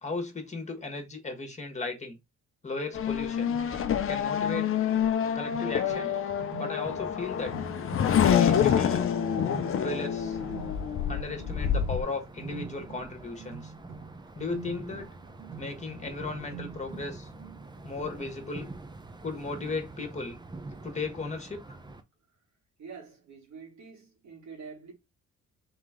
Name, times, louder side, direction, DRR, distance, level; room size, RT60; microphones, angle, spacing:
voice 1, 0.0-2.2 2.6-3.5 4.1-4.7 5.3-6.1 6.6-7.5 8.2-9.0 9.7-10.4 11.1-13.7 14.3-15.1 15.6-17.3 17.8-18.7 19.2-20.4 20.8-21.8, left 3 dB, 25° left, 1.5 m, -36 dB
Race car auto racing / Accelerating revving vroom, 2.9-12.0, left 8 dB, 45° left, 0.6 m, -27 dB
sound 1, 3.3-17.9, right 7 dB, 85° right, 2.1 m, -47 dB
sound 2, 6.8-22.0, right 2 dB, 15° right, 0.6 m, -45 dB
voice 2, 22.8-24.9, right 5 dB, 65° right, 2.3 m, -46 dB
3.8 x 3.0 x 3.7 m
cardioid pair, 90°, 30 cm